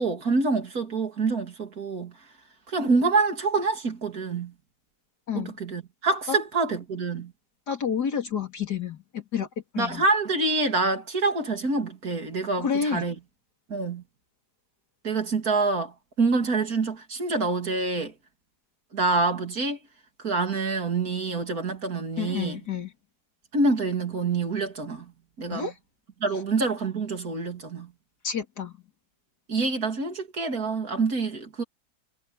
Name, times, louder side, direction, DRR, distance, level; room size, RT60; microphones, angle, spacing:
voice 1, 0.0-2.1 2.7-4.5 5.4-7.3 9.8-13.1 13.7-14.0 15.0-15.9 16.2-18.1 18.9-19.8 20.2-22.6 23.5-25.1 25.4-25.7 26.2-27.9 29.5-31.6, right 3 dB, 65° right, 3.4 m, -26 dB
voice 2, 7.7-9.5 9.7-10.0 12.6-13.1 22.2-22.9 25.5-25.7 28.2-28.8, left 7 dB, 85° left, 3.5 m, -29 dB
omnidirectional pair, 1.7 m